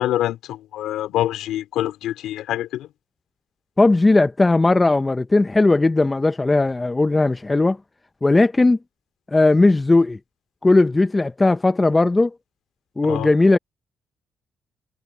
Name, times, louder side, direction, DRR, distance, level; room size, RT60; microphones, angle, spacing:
voice 1, 0.0-2.9 13.0-13.3, left 13 dB, 85° left, 4.1 m, -25 dB
voice 2, 3.8-7.8 8.2-8.8 9.3-10.2 10.6-12.3 13.0-13.6, left 2 dB, 20° left, 0.6 m, -17 dB
cardioid pair, 90°, 0 cm